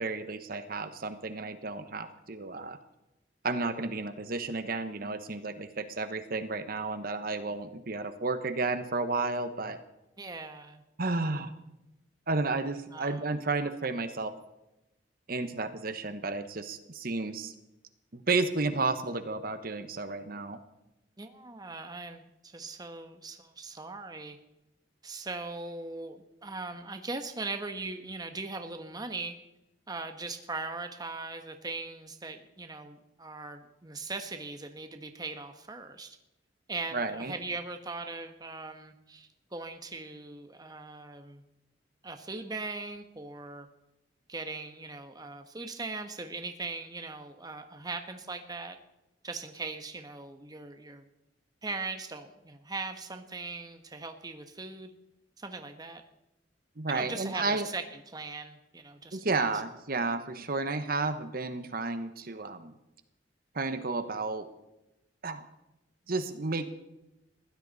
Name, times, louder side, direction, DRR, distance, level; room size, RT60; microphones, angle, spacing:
voice 1, 0.0-2.8 3.4-9.8 11.0-11.5 12.3-14.3 15.3-17.5 18.1-20.6 36.9-37.3 56.8-57.7 59.1-62.7 63.5-64.5 65.2-65.4 66.1-66.7, right 3 dB, 55° right, 10 dB, 1.2 m, -32 dB
voice 2, 10.2-10.8 12.9-13.4 21.2-24.4 25.0-29.4 29.9-36.2 36.7-41.4 42.0-43.7 44.3-48.8 49.2-51.1 51.6-54.9 55.4-56.0 56.9-59.5, right 3 dB, 20° right, 7 dB, 1.2 m, -40 dB
21.5 x 16.0 x 4.2 m, 0.91 s
head